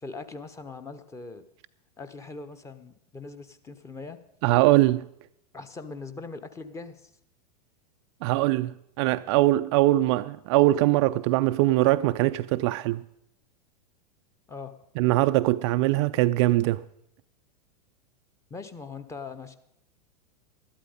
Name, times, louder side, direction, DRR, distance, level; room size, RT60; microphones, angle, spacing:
voice 1, 0.0-1.4 2.0-4.2 5.5-7.1 14.5-14.8 18.5-19.6, left 4 dB, 15° left, 1.0 m, -41 dB
voice 2, 4.4-5.0 8.2-13.0 15.0-16.8, right 17 dB, 45° right, 0.4 m, -22 dB
12.5 x 11.5 x 5.1 m
figure-of-eight pair, 95°, 21 cm